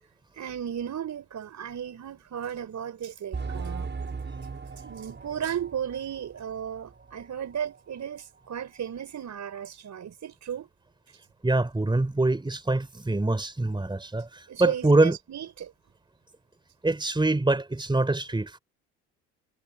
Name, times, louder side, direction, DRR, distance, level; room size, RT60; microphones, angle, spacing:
voice 1, 0.4-3.9 4.7-10.7 14.5-15.7, right 9 dB, 45° right, 4.8 m, -35 dB
sound 1, 3.3-7.6 7.9-8.0 8.6-8.7, right 4 dB, 30° right, 5.9 m, -38 dB
voice 2, 11.4-15.2 16.8-18.6, right 2 dB, 10° right, 3.7 m, -24 dB
hypercardioid pair, 60°, 39 cm